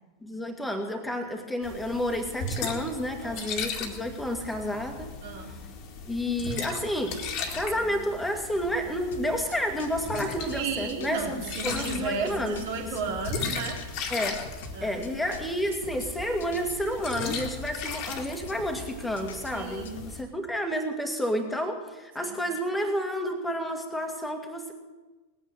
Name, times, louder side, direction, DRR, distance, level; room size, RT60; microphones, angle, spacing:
voice 1, 0.2-5.2 6.1-12.6 14.1-14.5 14.8-24.7, equal, 5° left, 4 dB, 2.1 m, -30 dB
sound 1, 1.6-20.2, left 4 dB, 40° left, 2.1 m, -37 dB
voice 2, 5.2-5.6 10.5-13.8 14.7-15.0 19.5-20.0 22.2-22.4, right 5 dB, 50° right, 1 dB, 2.8 m, -33 dB
sound 2, 9.1-20.1, left 3 dB, 60° left, 1.7 m, -45 dB
19.5 x 9.2 x 6.5 m, 1.2 s
figure-of-eight pair, 90°, 0 cm